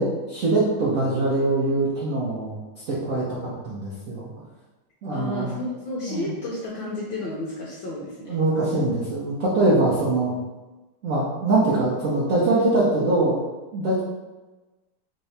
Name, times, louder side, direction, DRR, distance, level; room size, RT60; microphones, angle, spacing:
voice 1, 0.0-2.6 2.9-4.3 5.0-5.5 6.1-6.3 8.3-10.3 11.0-13.4 13.7-14.0, right 2 dB, 85° right, -6 dB, 0.7 m, -23 dB
voice 2, 5.1-8.3, left 2 dB, 70° left, -5 dB, 1.2 m, -32 dB
3.6 x 2.7 x 3.2 m, 1.2 s
omnidirectional pair, 2.4 m